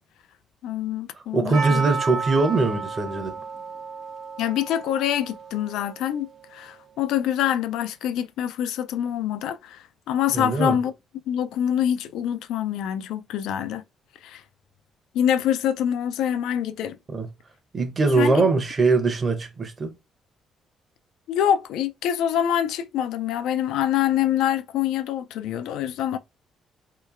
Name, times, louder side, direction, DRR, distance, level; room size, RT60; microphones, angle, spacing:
voice 1, 0.6-1.8 4.4-10.9 11.3-13.8 14.2-14.4 15.1-17.0 18.2-18.5 21.3-26.2, left 10 dB, 90° left, 0.3 m, -25 dB
voice 2, 1.1-3.4 10.3-10.8 17.1-17.3 17.7-19.9, right 3 dB, 35° right, 0.8 m, -22 dB
Percussion, 1.5-6.5, right 4 dB, 70° right, 0.8 m, -33 dB
3.0 x 2.9 x 2.5 m
cardioid pair, 90°, 0 cm